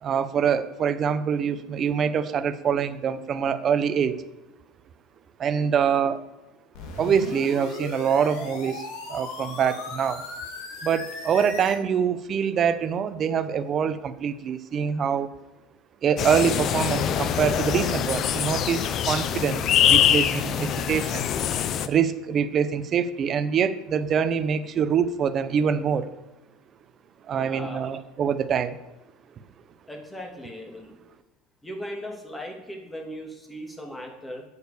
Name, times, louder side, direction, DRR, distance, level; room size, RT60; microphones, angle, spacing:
voice 1, 0.0-4.2 5.4-6.2 7.0-10.2 10.8-15.3 16.0-21.3 21.9-26.1 27.3-28.8, right 7 dB, 40° right, 12 dB, 0.8 m, -25 dB
sound 1, 6.7-11.8, left 3 dB, 70° left, 2.5 m, -37 dB
sound 2, 16.2-21.9, left 9 dB, 50° left, 0.7 m, -24 dB
voice 2, 27.3-27.9 29.9-31.0 31.6-34.4, equal, 10° left, 1 dB, 2.7 m, -38 dB
9.1 x 6.8 x 7.0 m, 1.0 s
supercardioid pair, 95°, 0 cm